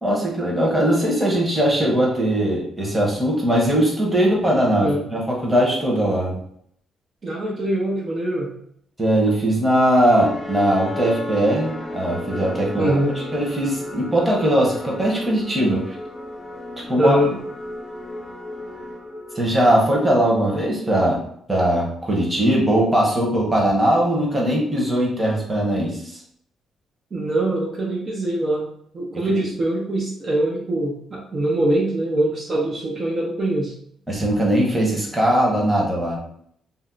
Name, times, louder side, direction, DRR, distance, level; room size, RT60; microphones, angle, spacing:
voice 1, 0.0-6.4 9.0-13.0 13.3-15.9 16.9-17.2 19.3-21.2 21.5-26.0 34.1-36.2, right 1 dB, 15° right, -2 dB, 1.1 m, -20 dB
voice 2, 7.2-8.5 12.8-13.1 17.0-17.3 27.1-28.7 28.9-33.7, right 1 dB, 45° right, -4 dB, 0.7 m, -23 dB
sound 1, 9.9-20.1, left 1 dB, 20° left, 0.5 m, -34 dB
2.7 x 2.0 x 3.8 m, 0.68 s
cardioid pair, 90°, 0 cm